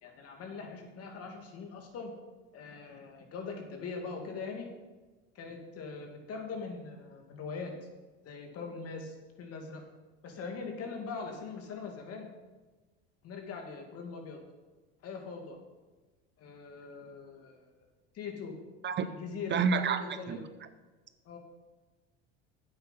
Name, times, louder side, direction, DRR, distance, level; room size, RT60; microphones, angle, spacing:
voice 1, 0.0-2.1 2.5-4.7 5.3-7.7 8.2-9.8 10.2-12.3 13.2-14.4 15.0-15.6 16.4-17.7 18.1-18.5 19.0-20.4 21.3-21.4, left 4 dB, 50° left, 3 dB, 2.5 m, -41 dB
voice 2, 19.5-20.0 20.3-20.4, right 6 dB, 35° right, 11 dB, 0.7 m, -28 dB
9.4 x 8.2 x 5.7 m, 1.2 s
supercardioid pair, 95°, 31 cm